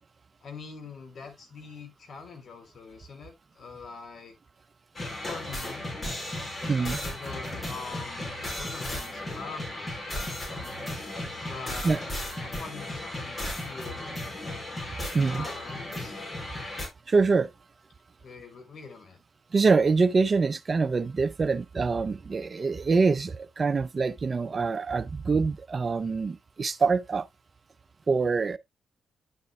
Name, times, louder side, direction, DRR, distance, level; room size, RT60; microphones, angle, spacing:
voice 1, 0.4-4.4 5.2-5.9 6.6-9.9 11.4-12.0 12.4-14.1 15.3-16.2 18.2-19.2, left 4 dB, 60° left, 2.5 m, -43 dB
sound 1, 4.9-16.9, left 1 dB, 35° left, 4.6 m, -35 dB
voice 2, 6.7-7.0 11.8-12.0 15.1-15.4 17.1-17.5 19.5-27.3 28.1-28.6, right 4 dB, 45° right, 0.6 m, -25 dB
10.5 x 6.7 x 2.2 m
supercardioid pair, 60°, 0 cm